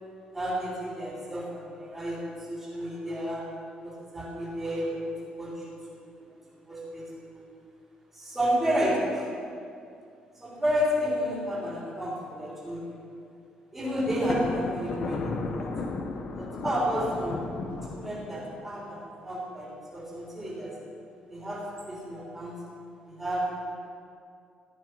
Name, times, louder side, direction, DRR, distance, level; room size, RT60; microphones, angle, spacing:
voice 1, 0.3-2.2 2.5-3.4 3.8-5.6 5.9-6.1 6.7-7.0 7.3-7.4 8.1-9.3 10.4-13.0 13.7-15.7 16.3-17.4 17.9-20.7 21.3-22.6 23.1-23.5, equal, 10° right, -6 dB, 3.5 m, -31 dB
Thunder, 14.1-18.6, left 3 dB, 45° left, 1.3 m, -34 dB
16.0 x 12.0 x 6.3 m, 2.4 s
cardioid pair, 180°, 3 cm